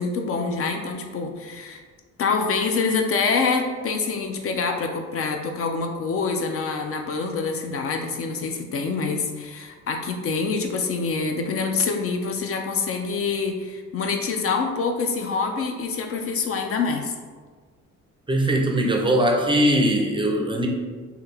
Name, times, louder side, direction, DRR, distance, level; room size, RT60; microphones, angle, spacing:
voice 1, 0.0-1.8 2.2-17.1, left 4 dB, 50° left, 4 dB, 0.4 m, -26 dB
voice 2, 18.3-20.7, right 1 dB, 15° right, 0 dB, 0.4 m, -20 dB
3.2 x 2.3 x 3.3 m, 1.5 s
cardioid pair, 90°, 30 cm